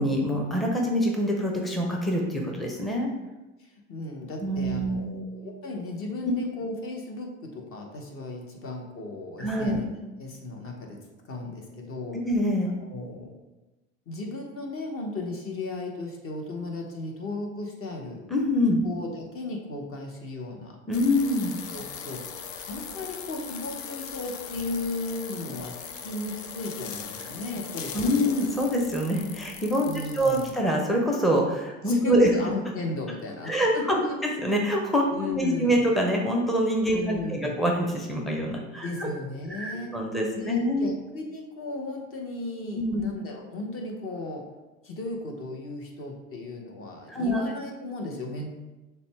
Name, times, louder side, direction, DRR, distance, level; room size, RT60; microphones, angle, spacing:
voice 1, 0.0-3.1 4.4-5.2 9.4-9.8 12.2-12.7 18.3-18.9 20.9-21.5 27.9-29.9 30.1-32.3 33.5-34.0 34.4-39.1 39.6-40.9 42.7-43.0 47.1-47.5, equal, ahead, 0 dB, 0.6 m, -25 dB
voice 2, 3.6-11.0 11.3-12.2 12.7-13.3 14.1-18.2 18.8-20.8 21.7-28.4 29.8-30.5 31.8-34.2 35.1-35.7 36.9-37.6 38.8-44.5 44.8-48.5, left 2 dB, 35° left, 2 dB, 1.1 m, -36 dB
sound 1, 20.9-30.5, left 7 dB, 85° left, 0.6 m, -40 dB
6.6 x 2.3 x 3.4 m, 1.1 s
hypercardioid pair, 85°, 39 cm